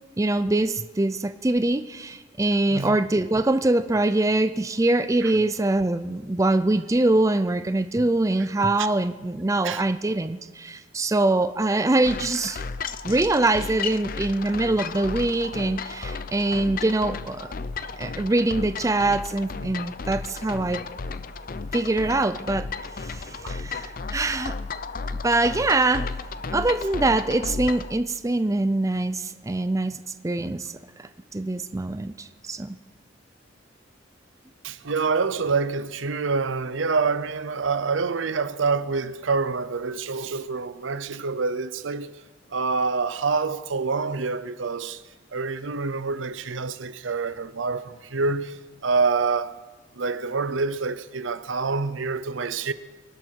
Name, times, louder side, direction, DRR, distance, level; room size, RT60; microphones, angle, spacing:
voice 1, 0.2-12.6 13.0-17.5 18.0-20.8 21.7-22.7 23.0-24.6 25.2-26.1 26.5-32.8, right 2 dB, 15° right, 0.4 m, -24 dB
sound 1, 12.0-27.9, left 4 dB, 45° left, 0.6 m, -34 dB
voice 2, 34.6-42.1 42.5-45.0 45.3-49.6 49.9-52.7, right 4 dB, 75° right, 0.7 m, -26 dB
24.0 x 12.0 x 4.6 m
head